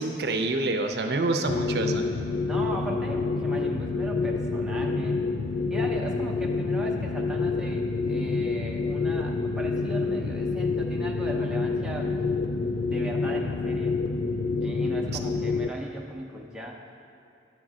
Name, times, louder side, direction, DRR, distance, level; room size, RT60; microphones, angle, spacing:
voice 1, 0.0-2.0, right 2 dB, 60° right, 4 dB, 0.6 m, -27 dB
sound 1, 1.5-15.7, left 3 dB, 75° left, 0.4 m, -28 dB
voice 2, 2.5-5.2 5.7-12.1 12.9-14.0 14.6-16.8, right 1 dB, 5° right, -2 dB, 0.6 m, -38 dB
10.0 x 3.8 x 7.4 m, 2.6 s
head